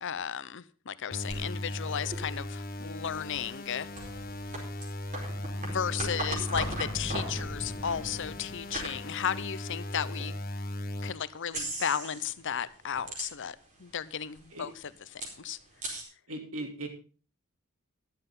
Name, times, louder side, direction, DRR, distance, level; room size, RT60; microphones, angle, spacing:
voice 1, 0.0-3.9 5.6-10.3 11.0-15.6, left 8 dB, 60° left, 0.7 m, -34 dB
sound 1, 1.1-11.1, left 1 dB, 45° left, 1.2 m, -38 dB
sound 2, 1.3-10.3 10.8-10.9 11.5-12.3 12.6-13.8 14.0-14.1 14.3-16.0, right 2 dB, 35° right, 4.5 m, -40 dB
sound 3, 6.5-9.7, left 1 dB, ahead, 2.9 m, -41 dB
voice 2, 16.3-16.9, right 1 dB, 75° right, 2.9 m, -38 dB
13.5 x 11.5 x 3.8 m
head